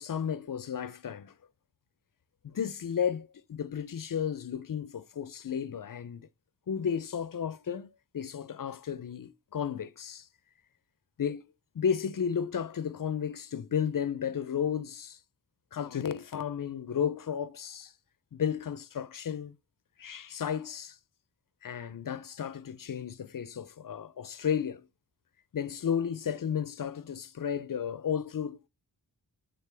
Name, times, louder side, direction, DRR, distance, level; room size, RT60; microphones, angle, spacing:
voice 1, 0.0-1.3 2.4-6.3 6.7-10.3 11.2-11.5 11.7-15.2 15.7-17.9 18.3-19.5 20.0-21.0 21.6-24.9 25.5-28.7, left 8 dB, 55° left, 0.6 m, -33 dB
8.3 x 3.9 x 3.4 m
wide cardioid pair, 55°, 40 cm